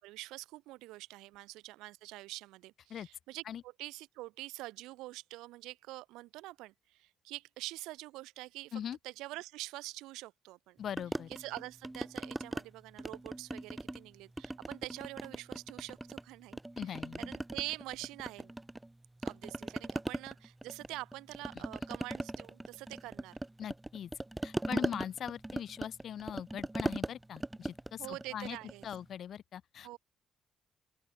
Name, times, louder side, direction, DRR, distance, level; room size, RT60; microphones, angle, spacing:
voice 1, 0.0-10.8 11.3-18.5 19.2-23.4 24.7-25.0 28.0-28.9 29.8-30.0, right 19 dB, 70° right, 6.0 m, -45 dB
voice 2, 10.8-11.3 16.8-17.3 23.6-24.1 24.4-28.6 28.8-30.0, left 9 dB, 55° left, 1.2 m, -41 dB
sound 1, 11.0-12.6 13.0-14.1 14.4-16.2 16.5-18.9 19.2-29.0, right 1 dB, 15° right, 1.9 m, -39 dB
open air
figure-of-eight pair, 40°, 0 cm